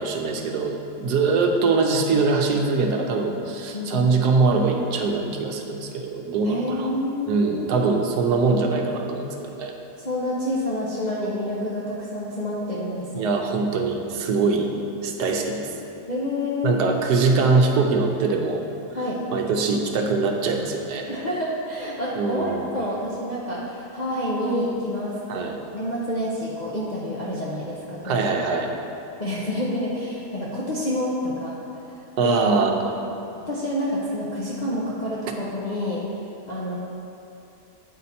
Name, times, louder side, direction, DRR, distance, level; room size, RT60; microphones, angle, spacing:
voice 1, 0.0-6.9 7.3-9.3 9.6-9.7 13.1-14.7 15.0-15.7 16.6-18.6 19.3-21.1 22.2-22.6 25.3-25.5 28.0-28.7 32.2-32.9, right 4 dB, 75° right, 2 dB, 1.2 m, -22 dB
voice 2, 3.7-4.1 6.4-7.7 10.0-13.4 16.1-16.9 18.9-19.2 21.1-28.2 28.5-28.6 29.2-32.0 32.2-32.4 33.4-36.0 36.5-36.7, left 1 dB, 50° left, -7 dB, 0.5 m, -28 dB
8.5 x 4.2 x 4.2 m, 2.8 s
omnidirectional pair, 1.8 m